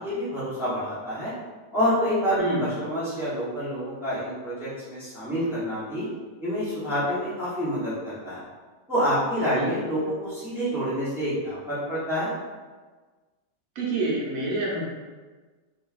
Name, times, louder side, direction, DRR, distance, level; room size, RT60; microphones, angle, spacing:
voice 1, 0.0-1.3 1.7-6.1 6.4-8.4 8.9-12.3, equal, 5° right, -12 dB, 0.4 m, -27 dB
voice 2, 13.8-14.8, right 2 dB, 65° right, -4 dB, 1.0 m, -27 dB
3.1 x 2.3 x 2.4 m, 1.4 s
omnidirectional pair, 1.9 m